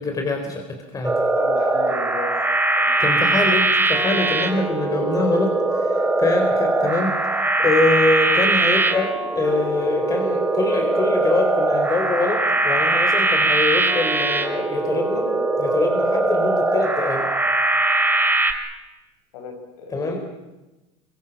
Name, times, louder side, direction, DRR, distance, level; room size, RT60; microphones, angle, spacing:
voice 1, 0.0-1.2 3.0-15.3 15.6-17.3 19.9-20.2, left 2 dB, 20° left, 3 dB, 4.1 m, -24 dB
sound 1, 1.0-18.5, right 2 dB, 10° right, 2.5 m, -21 dB
voice 2, 1.4-2.4 2.8-3.2 19.3-20.2, left 3 dB, 90° left, 6 dB, 5.8 m, -35 dB
25.5 x 24.0 x 7.4 m, 1.0 s
supercardioid pair, 135°, 17 cm